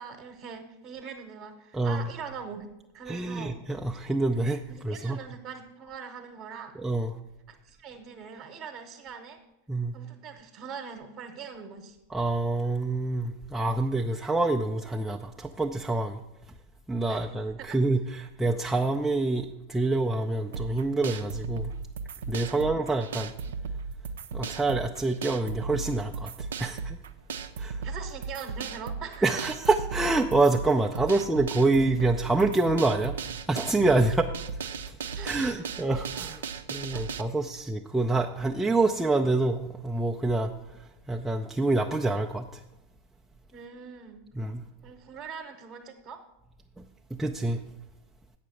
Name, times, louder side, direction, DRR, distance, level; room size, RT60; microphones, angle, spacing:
voice 1, 0.0-2.7 2.9-3.9 4.7-6.7 7.5-9.4 9.9-12.0 17.1-17.2 17.6-17.8 22.4-22.7 27.8-29.5 31.1-31.2 35.2-35.7 36.9-37.0 43.5-44.2 44.8-46.2, right 6 dB, 35° right, 3 dB, 1.1 m, -42 dB
voice 2, 1.7-2.1 3.1-5.2 6.7-7.1 9.7-9.9 12.1-16.2 16.9-21.7 22.3-23.3 24.3-27.0 27.6-27.9 29.2-33.2 33.5-34.3 34.6-42.6 44.3-44.6 46.8-46.9 47.1-47.6, right 2 dB, 5° right, 0 dB, 0.5 m, -27 dB
sound 1, 20.5-37.2, right 5 dB, 60° right, 0.5 m, -36 dB
8.3 x 5.9 x 7.7 m, 0.93 s
figure-of-eight pair, 90°, 0 cm